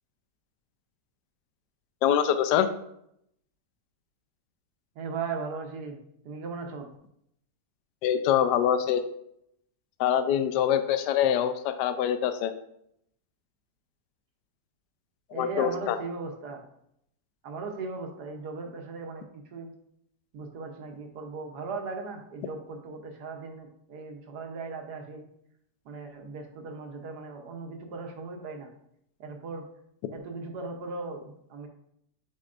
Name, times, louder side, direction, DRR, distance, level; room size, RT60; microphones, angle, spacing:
voice 1, 2.0-2.7 8.0-9.0 10.0-12.5 15.3-16.0, left 9 dB, 75° left, 10 dB, 1.1 m, -24 dB
voice 2, 5.0-6.0 6.2-6.9 15.3-16.6 17.4-19.7 20.3-25.3 25.8-28.7 29.2-29.6 30.1-31.7, right 4 dB, 65° right, 4 dB, 1.3 m, -38 dB
8.5 x 4.6 x 2.5 m, 0.75 s
omnidirectional pair, 1.9 m